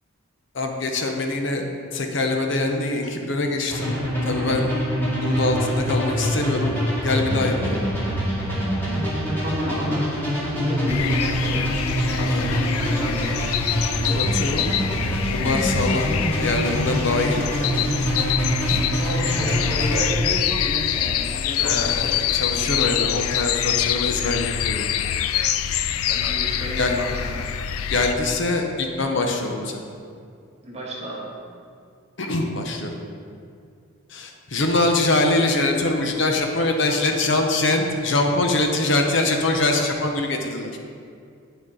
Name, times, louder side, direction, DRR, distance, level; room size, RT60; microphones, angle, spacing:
voice 1, 0.5-1.6 1.9-3.9 4.2-4.7 5.2-6.7 7.0-7.8 12.3-12.6 14.1-14.7 15.3-16.1 16.4-17.9 18.7-18.8 21.6-24.9 26.8-26.9 27.9-29.8 32.2-32.9 34.1-40.7, left 2 dB, 55° left, 3 dB, 0.7 m, -23 dB
sound 1, 3.7-20.1, equal, 10° left, 1.8 m, -25 dB
voice 2, 9.4-10.1 10.6-13.5 18.7-22.2 25.9-27.5 30.6-31.3, equal, 30° right, -4 dB, 1.4 m, -31 dB
sound 2, 10.9-28.1, left 9 dB, 85° left, 0.4 m, -25 dB
9.0 x 6.6 x 3.8 m, 2.3 s
head